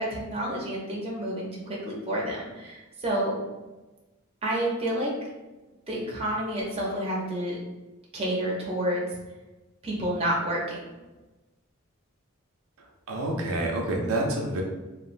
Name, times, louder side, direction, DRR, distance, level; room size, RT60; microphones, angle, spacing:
voice 1, 0.0-3.4 4.4-5.1 5.9-7.6 8.1-9.2 9.8-10.8, right 1 dB, 30° right, -3 dB, 0.5 m, -29 dB
voice 2, 13.1-14.6, right 1 dB, 80° right, 0 dB, 0.5 m, -27 dB
3.0 x 2.2 x 2.5 m, 1.1 s
head